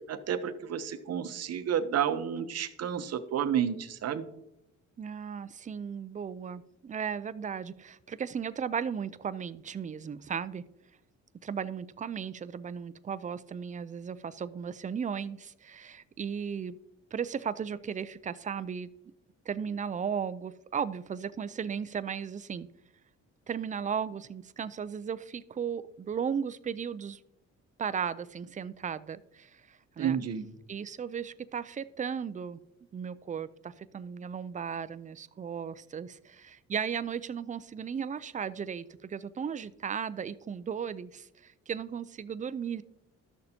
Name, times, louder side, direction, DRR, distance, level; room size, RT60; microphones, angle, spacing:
voice 1, 0.1-4.2 30.0-30.5, right 8 dB, 55° right, 11 dB, 0.8 m, -31 dB
voice 2, 5.0-10.7 11.4-16.7 17.1-18.9 19.5-22.7 23.5-27.2 27.8-30.2 30.7-32.6 32.9-42.8, right 7 dB, 25° right, 14 dB, 0.4 m, -36 dB
12.5 x 6.6 x 2.8 m, 0.83 s
cardioid pair, 90°, 30 cm